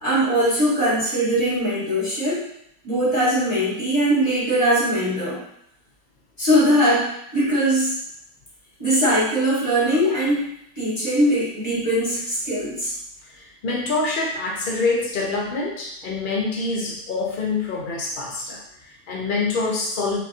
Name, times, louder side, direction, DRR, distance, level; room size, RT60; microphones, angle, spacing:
voice 1, 0.0-2.4 2.8-5.4 6.4-8.0 8.8-12.9, equal, 20° left, -8 dB, 1.4 m, -21 dB
voice 2, 13.2-20.2, left 3 dB, 80° left, -2 dB, 0.4 m, -26 dB
5.2 x 2.2 x 2.7 m, 0.75 s
omnidirectional pair, 1.6 m